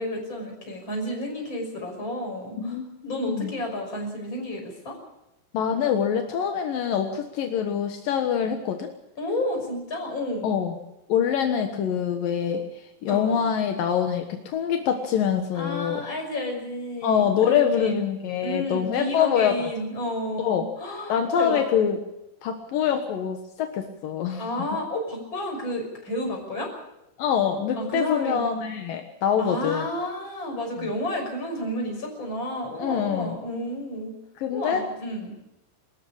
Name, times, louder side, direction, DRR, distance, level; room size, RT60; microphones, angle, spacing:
voice 1, 0.0-2.8 3.0-5.0 9.2-10.5 13.1-13.4 15.5-18.0 18.4-21.6 24.4-26.7 27.7-28.5 29.4-34.1 34.5-35.3, left 1 dB, 20° left, 2 dB, 6.2 m, -31 dB
voice 2, 2.6-3.5 5.5-8.9 10.4-10.8 11.1-12.6 13.0-16.0 17.0-19.7 20.4-20.6 21.1-22.0 22.4-24.5 27.2-29.9 32.8-33.4 34.4-34.9, left 8 dB, 70° left, 4 dB, 2.2 m, -25 dB
24.5 x 14.0 x 8.7 m, 0.88 s
omnidirectional pair, 6.0 m